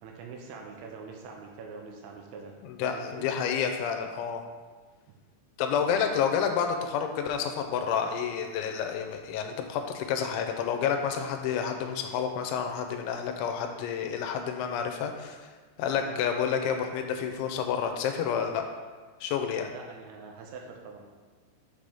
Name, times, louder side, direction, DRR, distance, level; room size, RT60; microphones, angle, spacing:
voice 1, 0.0-2.5 2.8-3.3 16.0-16.2 19.7-21.0, right 5 dB, 90° right, 1 dB, 3.0 m, -44 dB
voice 2, 2.6-4.5 5.6-15.4 15.8-18.6 19.2-19.7, left 7 dB, 85° left, 5 dB, 2.9 m, -29 dB
7.2 x 5.2 x 3.5 m, 1.4 s
omnidirectional pair, 5.3 m